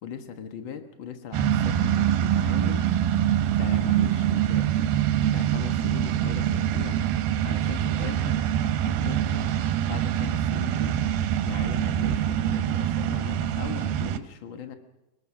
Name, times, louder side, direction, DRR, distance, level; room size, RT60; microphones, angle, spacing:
voice 1, 0.0-2.8 3.6-4.7 5.3-7.0 7.4-8.4 8.8-9.5 9.8-11.0 11.4-14.7, left 8 dB, 80° left, 6 dB, 1.1 m, -39 dB
sound 1, 1.3-14.2, right 10 dB, 75° right, 2.6 m, -24 dB
25.0 x 19.0 x 6.1 m, 0.97 s
omnidirectional pair, 4.6 m